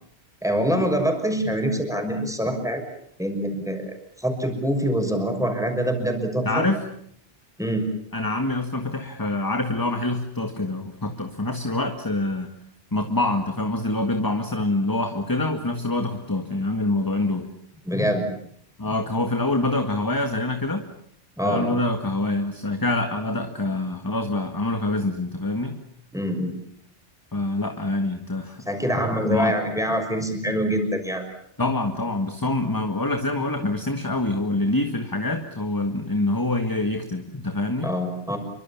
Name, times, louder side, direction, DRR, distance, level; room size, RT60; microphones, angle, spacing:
voice 1, 0.4-2.8 3.2-3.9 4.2-6.6 7.6-7.9 17.8-18.3 21.4-21.7 26.1-26.5 28.7-31.3 37.8-38.4, equal, 5° right, 5 dB, 6.1 m, -25 dB
voice 2, 6.5-6.8 8.1-12.5 12.9-17.5 18.8-20.9 21.4-25.8 27.3-28.7 29.3-29.5 31.6-37.9, left 2 dB, 20° left, 5 dB, 1.8 m, -25 dB
28.5 x 24.5 x 7.3 m, 0.69 s
omnidirectional pair, 1.1 m